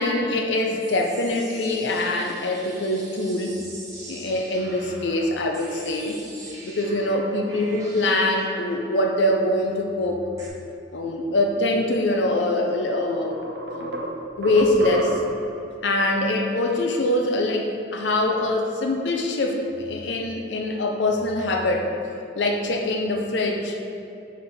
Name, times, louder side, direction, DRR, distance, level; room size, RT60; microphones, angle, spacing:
voice 1, 0.0-3.6 4.1-6.2 6.6-10.3 10.9-13.4 13.7-15.2 15.8-21.9 22.3-23.8, left 1 dB, 90° left, 2 dB, 0.6 m, -24 dB
sound 1, 0.8-10.5, right 2 dB, 15° right, 1.1 m, -43 dB
sound 2, 12.9-15.5, right 1 dB, 80° right, 0.9 m, -32 dB
6.4 x 3.5 x 5.6 m, 2.8 s
head